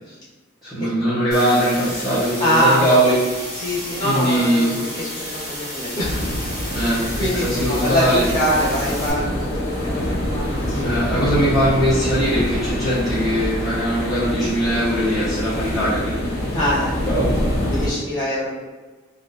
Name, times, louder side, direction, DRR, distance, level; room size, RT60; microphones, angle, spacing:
voice 1, 0.6-3.2 4.0-4.7 6.7-7.0 7.4-8.2 10.8-16.1 17.0-17.4, right 1 dB, ahead, -14 dB, 1.0 m, -20 dB
sound 1, 1.3-9.1, equal, 20° right, 1.4 m, -32 dB
voice 2, 2.4-2.8 3.5-6.3 7.0-11.3 16.5-17.0 17.7-18.5, equal, 20° left, -9 dB, 1.4 m, -24 dB
sound 2, 6.0-17.9, equal, 50° left, 1.0 m, -25 dB
3.6 x 2.7 x 2.6 m, 1.3 s
head